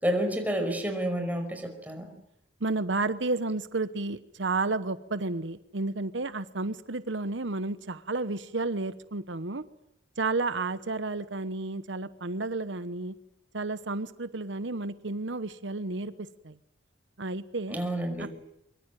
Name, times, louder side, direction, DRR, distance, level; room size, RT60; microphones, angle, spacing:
voice 1, 0.0-2.1 17.7-18.3, equal, 10° right, 4 dB, 5.3 m, -29 dB
voice 2, 2.6-9.6 10.2-13.1 13.5-16.1 16.4-16.6 17.2-17.8 18.2-18.3, right 3 dB, 85° right, 13 dB, 1.1 m, -31 dB
24.0 x 23.5 x 9.2 m, 0.78 s
head